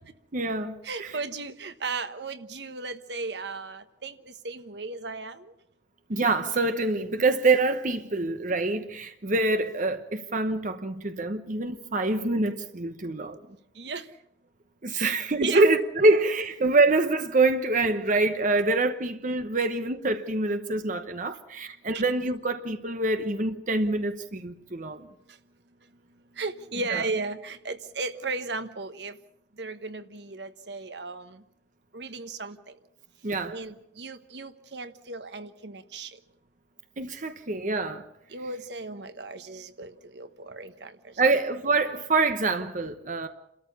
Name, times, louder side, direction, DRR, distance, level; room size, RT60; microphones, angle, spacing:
voice 1, 0.3-0.7 1.0-1.2 6.1-13.4 14.8-25.1 26.9-27.0 33.2-33.6 37.0-38.0 41.2-43.3, right 2 dB, 45° right, 1.0 m, -25 dB
voice 2, 0.8-5.5 13.8-14.1 15.0-15.7 21.9-22.0 26.4-29.2 29.6-31.4 31.9-32.6 33.4-36.1 38.3-41.1, right 3 dB, 70° right, 1.2 m, -35 dB
29.0 x 13.5 x 7.0 m
head